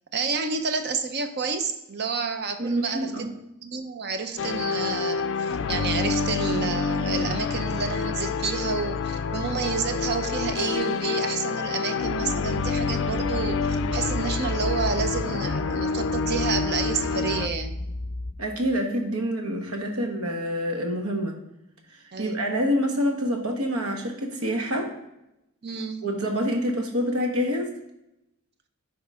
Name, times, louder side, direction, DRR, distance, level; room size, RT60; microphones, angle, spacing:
voice 1, 0.1-3.1 3.6-17.7 22.1-22.4 25.6-26.0, right 5 dB, 50° right, 8 dB, 0.7 m, -29 dB
voice 2, 2.6-3.3 18.4-21.4 22.2-24.9 26.0-27.7, equal, 80° right, 3 dB, 1.4 m, -27 dB
sound 1, 4.4-17.5, left 5 dB, 60° left, 0.4 m, -27 dB
sound 2, 12.5-18.3, left 1 dB, 15° left, 0.6 m, -34 dB
10.0 x 4.8 x 3.6 m, 0.86 s
head